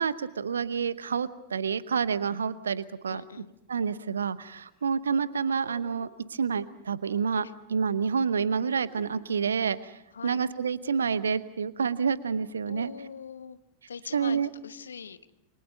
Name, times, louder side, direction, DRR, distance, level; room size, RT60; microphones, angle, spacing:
voice 1, 0.0-3.2 3.7-12.9 14.1-14.5, right 6 dB, 70° right, 17 dB, 0.9 m, -28 dB
voice 2, 3.1-3.5 7.4-7.5 10.1-10.4 12.7-13.6 13.9-14.4 14.6-15.2, left 6 dB, 70° left, 13 dB, 1.1 m, -42 dB
sound 1, 3.5-3.6 4.2-4.3 4.6-4.9 5.6-6.3 7.1-7.5 8.0-8.1 8.6-9.7 10.0-10.1 10.5-10.8 11.2-11.6 12.2-13.0 13.2-13.3, left 4 dB, 35° left, 3.7 m, -55 dB
28.0 x 25.5 x 5.4 m, 0.82 s
figure-of-eight pair, 90°, 0 cm